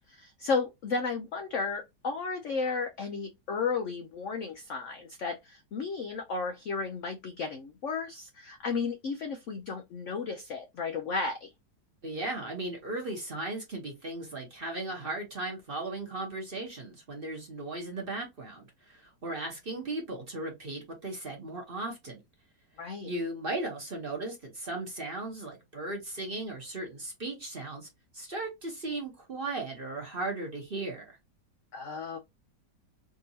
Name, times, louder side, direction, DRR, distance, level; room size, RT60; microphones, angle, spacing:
voice 1, 0.1-11.5 22.8-23.1 31.7-32.2, left 4 dB, 75° left, 0.6 m, -33 dB
voice 2, 12.0-22.2 23.0-27.9 28.1-31.1, right 2 dB, 40° right, 0.9 m, -36 dB
3.7 x 2.8 x 2.7 m
omnidirectional pair, 2.0 m